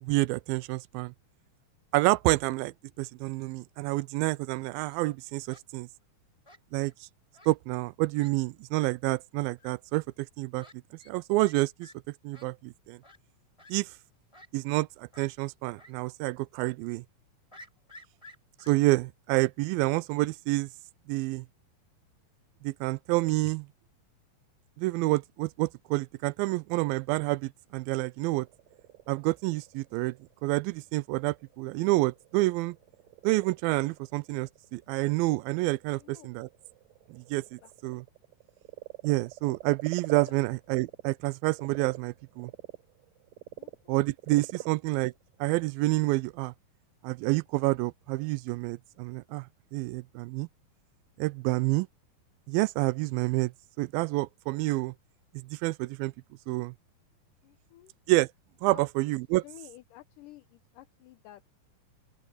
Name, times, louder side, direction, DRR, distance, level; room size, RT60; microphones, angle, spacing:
voice 1, 0.0-1.1 1.9-5.9 6.7-7.1 7.5-10.7 11.1-11.9 12.2-13.0 13.7-13.9 14.5-17.0 18.7-20.7 21.1-21.5 22.6-23.7 24.8-28.5 29.1-30.2 30.4-32.8 33.2-36.5 37.1-38.1 39.0-42.5 43.9-45.1 45.4-46.5 47.0-49.5 49.7-50.5 51.2-51.9 52.5-53.5 53.8-54.9 55.3-56.1 56.5-56.7 58.1-58.3 58.6-59.4, right 21 dB, 80° right, 2.3 m, -28 dB
Fowl, 4.6-5.0 5.5-5.6 6.4-6.9 7.3-7.5 7.8-7.9 8.1-8.3 8.7-8.9 9.6-9.7 10.6-10.7 11.0-11.1 11.4-11.5 11.8-11.9 12.3-12.5 13.0-13.2 13.6-13.7 14.3-14.9 15.1-15.3 15.8-15.9 16.2-16.3 17.5-18.7, left 1 dB, 5° left, 6.5 m, -52 dB
Frog, 28.5-41.1 41.5-46.1, right 16 dB, 65° right, 4.9 m, -47 dB
voice 2, 35.9-36.3 37.6-37.7 40.3-40.4 43.6-44.0 44.6-44.7 57.4-57.9 58.7-58.8 59.4-61.5, left 15 dB, 75° left, 2.1 m, -51 dB
open air
omnidirectional pair, 4.3 m